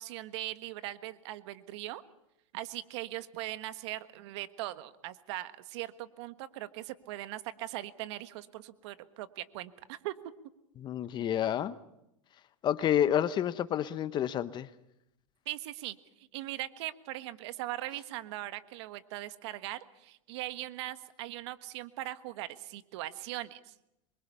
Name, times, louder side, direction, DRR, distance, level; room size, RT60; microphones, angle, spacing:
voice 1, 0.0-2.0 2.5-10.1 15.4-23.7, right 15 dB, 60° right, 11 dB, 1.5 m, -40 dB
voice 2, 10.8-11.8 12.6-14.7, left 10 dB, 30° left, 15 dB, 0.9 m, -29 dB
26.5 x 23.5 x 5.6 m, 0.83 s
supercardioid pair, 135°, 16 cm